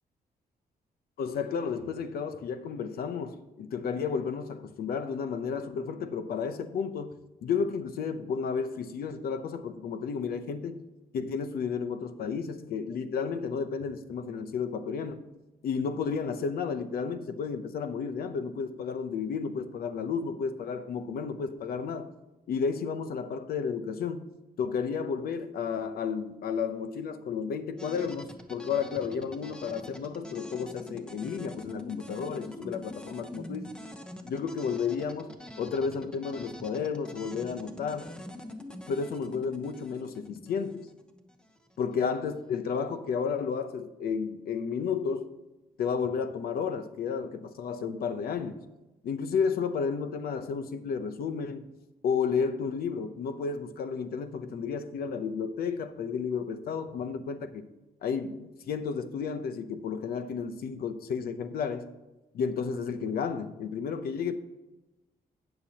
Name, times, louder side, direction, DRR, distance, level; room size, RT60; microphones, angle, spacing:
voice 1, 1.2-10.8 11.1-15.2 15.6-22.1 22.5-24.3 24.6-33.7 34.3-38.1 38.9-40.9 41.8-45.3 45.8-48.6 49.0-51.7 52.0-57.7 58.0-61.9 62.3-64.4, left 6 dB, 85° left, 0.7 m, -32 dB
sound 1, 27.8-41.7, left 1 dB, 5° left, 0.8 m, -45 dB
17.5 x 6.7 x 2.9 m
wide cardioid pair, 145°, 15 cm